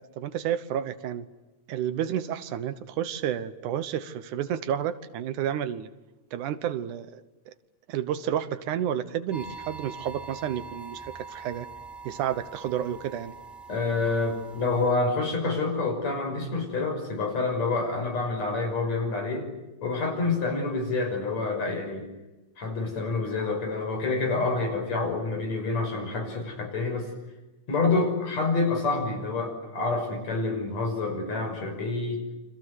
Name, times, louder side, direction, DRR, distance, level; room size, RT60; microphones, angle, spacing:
voice 1, 0.2-1.3 1.7-5.9 6.3-7.2 7.5-7.6 7.9-11.7 12.0-13.3 20.5-20.7 27.8-28.0, right 10 dB, 85° right, 13 dB, 2.6 m, -30 dB
sound 1, 9.3-14.9, right 4 dB, ahead, 2.9 m, -43 dB
voice 2, 13.7-19.5 19.8-22.1 22.6-27.1 27.7-32.2, left 3 dB, 60° left, 4 dB, 7.3 m, -27 dB
29.5 x 25.0 x 8.1 m, 1.1 s
omnidirectional pair, 3.5 m